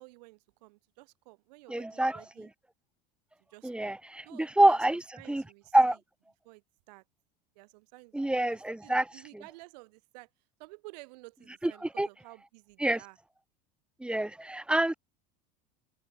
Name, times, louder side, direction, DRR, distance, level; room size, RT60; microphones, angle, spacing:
voice 1, 0.0-2.5 3.5-3.9 4.2-6.0 6.4-7.0 7.5-10.3 10.6-13.2, right 24 dB, 80° right, 6.0 m, -53 dB
voice 2, 1.7-2.5 3.6-5.0 5.3-5.4 5.7-6.0 8.1-9.1 11.6-12.1 12.8-13.0 14.0-14.9, right 1 dB, 5° right, 0.5 m, -26 dB
open air
supercardioid pair, 105°, 21 cm